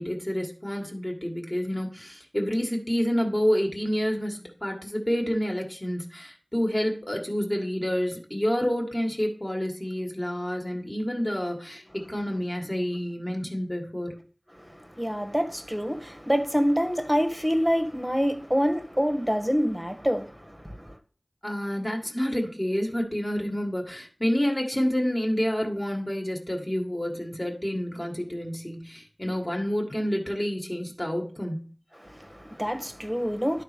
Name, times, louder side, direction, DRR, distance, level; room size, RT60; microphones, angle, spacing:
voice 1, 0.0-14.2 21.4-31.6, equal, 25° left, 1.9 m, -28 dB
voice 2, 14.5-20.9 32.0-33.6, equal, 5° right, 1.4 m, -27 dB
11.5 x 4.2 x 5.2 m
wide cardioid pair, 40°, 0 cm